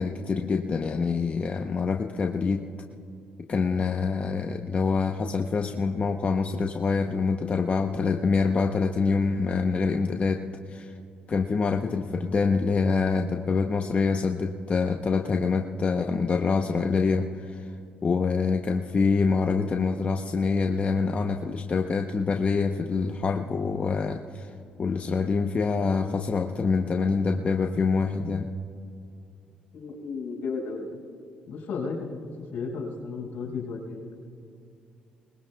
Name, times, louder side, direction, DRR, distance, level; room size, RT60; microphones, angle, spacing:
voice 1, 0.0-2.7 3.4-10.9 11.3-17.7 18.0-24.5 24.8-28.5, left 4 dB, 40° left, 4 dB, 0.8 m, -26 dB
voice 2, 29.7-31.0 31.5-32.1 32.5-34.2, left 4 dB, 75° left, 0 dB, 4.0 m, -34 dB
22.0 x 20.0 x 2.3 m, 2.6 s
supercardioid pair, 65°, 3 cm